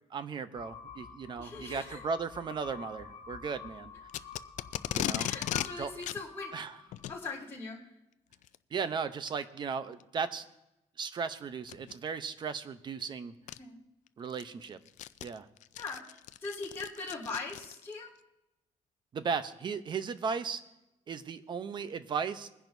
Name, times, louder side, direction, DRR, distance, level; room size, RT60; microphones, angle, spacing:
voice 1, 0.1-3.9 4.9-5.3 5.8-5.9 6.5-6.8 8.7-10.5 11.0-13.3 14.2-14.8 15.2-15.5 19.1-20.6 21.1-22.5, right 5 dB, 35° right, 12 dB, 0.7 m, -36 dB
sound 1, 0.5-7.3, left 5 dB, 40° left, 1.9 m, -49 dB
voice 2, 1.4-2.0 5.2-6.5 7.1-7.8 13.6-13.8 15.8-18.1, left 4 dB, 20° left, -8 dB, 3.8 m, -40 dB
Packing tape duct tape, 4.1-5.7 6.0-6.2 6.9-7.2 8.3-8.6 9.3-9.4 10.0-10.1 11.6-11.9 13.0-13.1 13.5-13.6 14.1-18.0, left 13 dB, 70° left, 0.4 m, -36 dB
22.0 x 10.5 x 2.7 m, 0.91 s
cardioid pair, 165°, 13 cm